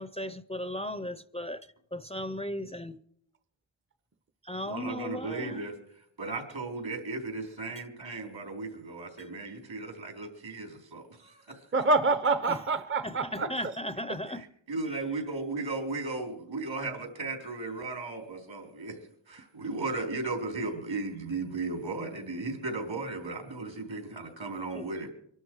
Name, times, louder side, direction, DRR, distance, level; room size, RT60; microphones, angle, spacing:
voice 1, 0.0-1.6 1.9-3.0 4.4-5.6 9.2-9.3 12.5-12.6 13.0-14.4 14.9-15.0 24.7-24.8, left 1 dB, 15° left, 0.6 m, -36 dB
voice 2, 4.7-5.7 6.2-11.6 14.3-19.0 19.3-25.1, right 3 dB, 70° right, 4.2 m, -36 dB
voice 3, 11.7-13.7, right 3 dB, 25° right, 0.7 m, -26 dB
24.0 x 12.5 x 4.8 m
wide cardioid pair, 85°, 47 cm